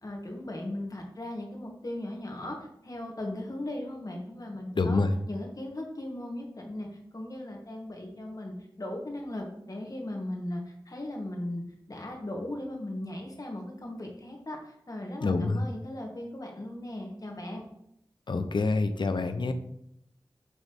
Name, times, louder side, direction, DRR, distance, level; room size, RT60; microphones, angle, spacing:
voice 1, 0.0-2.6 2.8-6.9 7.1-11.6 11.9-17.6, left 1 dB, 45° left, 0 dB, 1.5 m, -37 dB
voice 2, 4.8-5.1 15.2-15.6 18.3-19.5, left 3 dB, 65° left, 8 dB, 0.6 m, -26 dB
6.3 x 3.0 x 5.3 m, 0.76 s
wide cardioid pair, 55°, 9 cm